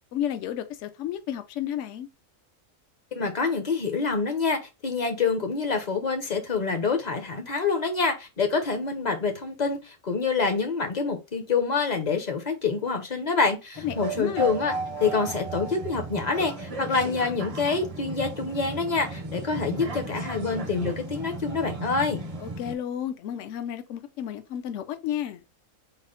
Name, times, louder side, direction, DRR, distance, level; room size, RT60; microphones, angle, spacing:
voice 1, 0.1-2.1 13.8-14.5 22.4-25.4, left 10 dB, 70° left, 0.9 m, -32 dB
voice 2, 3.1-14.7 15.0-22.2, left 4 dB, 40° left, 0.6 m, -26 dB
sound 1, 13.8-22.7, right 3 dB, 40° right, 0.5 m, -35 dB
4.2 x 2.1 x 3.7 m
omnidirectional pair, 1.4 m